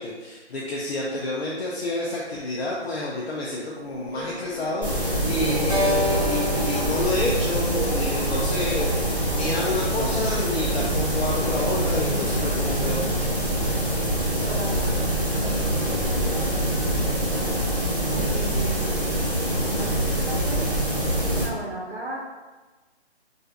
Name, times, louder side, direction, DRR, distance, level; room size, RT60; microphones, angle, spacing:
voice 1, 0.0-13.1, left 2 dB, 65° left, -4 dB, 0.5 m, -29 dB
Subway metro underground, 3.8-10.6, equal, 45° left, 1.1 m, -37 dB
sound 1, 4.8-21.4, right 1 dB, 5° right, 0.9 m, -25 dB
Keyboard (musical), 5.7-10.1, left 1 dB, 35° right, 0.4 m, -31 dB
voice 2, 14.4-17.5 18.3-18.9 19.6-20.7 21.3-22.2, right 1 dB, 75° right, -5 dB, 0.6 m, -37 dB
2.5 x 2.4 x 2.2 m, 1.2 s
hypercardioid pair, 165°, 33 cm